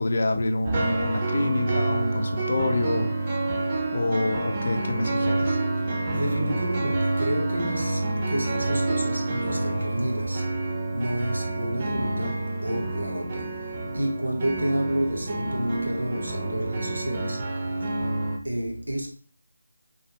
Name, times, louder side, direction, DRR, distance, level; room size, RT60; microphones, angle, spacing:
voice 1, 0.0-3.5 3.9-5.6, left 2 dB, 55° left, 0.5 m, -27 dB
sound 1, 0.6-18.4, right 2 dB, 30° right, 0.5 m, -28 dB
voice 2, 6.1-18.1 18.4-19.1, right 1 dB, 85° right, 0.9 m, -30 dB
2.6 x 2.0 x 3.0 m
figure-of-eight pair, 160°, 0 cm